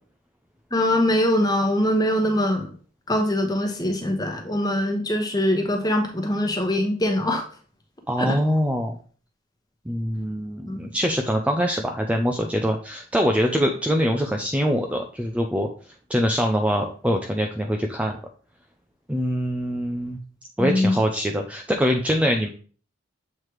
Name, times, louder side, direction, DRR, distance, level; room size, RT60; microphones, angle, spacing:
voice 1, 0.7-2.7 3.1-7.4 8.2-8.4 10.7-10.8 20.6-21.0, left 1 dB, 20° left, 3 dB, 1.0 m, -22 dB
voice 2, 8.1-9.0 9.9-15.7 16.1-18.2 19.1-20.2 20.6-22.5, equal, 5° right, 3 dB, 0.4 m, -23 dB
7.5 x 3.2 x 4.6 m, 0.42 s
head